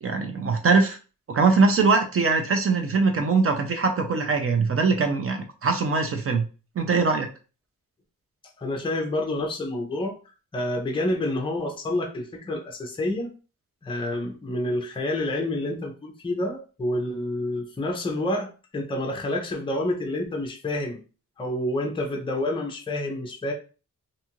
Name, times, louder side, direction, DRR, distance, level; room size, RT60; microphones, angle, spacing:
voice 1, 0.0-1.0 1.3-6.4 6.8-7.3, right 4 dB, 45° right, 4 dB, 0.5 m, -22 dB
voice 2, 8.6-10.2 10.5-13.3 13.8-21.0 21.4-23.5, left 1 dB, 15° left, 1 dB, 0.5 m, -28 dB
2.6 x 2.4 x 2.9 m, 0.35 s
wide cardioid pair, 135°, 32 cm